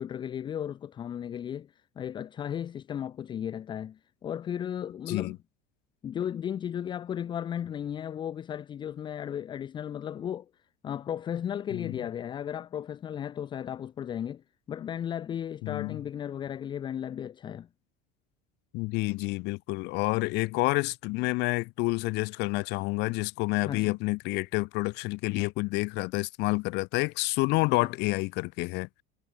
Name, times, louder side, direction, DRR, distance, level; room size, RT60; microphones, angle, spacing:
voice 1, 0.0-5.4 6.0-10.5 10.8-17.7 23.6-24.0 27.8-27.9, left 9 dB, 25° left, 0.6 m, -35 dB
voice 2, 15.6-16.0 18.7-28.9, left 25 dB, 60° left, 1.1 m, -29 dB
cardioid pair, 155°, 20 cm